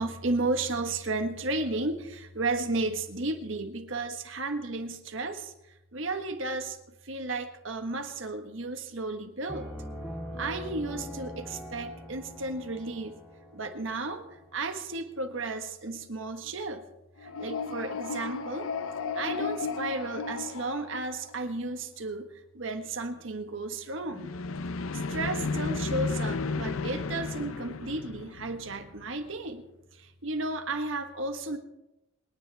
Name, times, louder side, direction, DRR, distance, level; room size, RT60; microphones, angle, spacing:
voice 1, 0.0-5.5 5.9-6.8 7.0-9.7 10.4-13.2 13.5-14.2 14.5-16.8 17.2-18.7 19.1-22.3 22.5-24.3 24.9-29.6 30.0-31.6, right 2 dB, 70° right, 7 dB, 1.4 m, -33 dB
Piano, 9.5-15.0, equal, 5° right, 5.8 m, -42 dB
sound 1, 17.2-21.5 24.1-29.1, left 4 dB, 85° left, 0.6 m, -34 dB
27.5 x 10.0 x 3.5 m, 0.93 s
head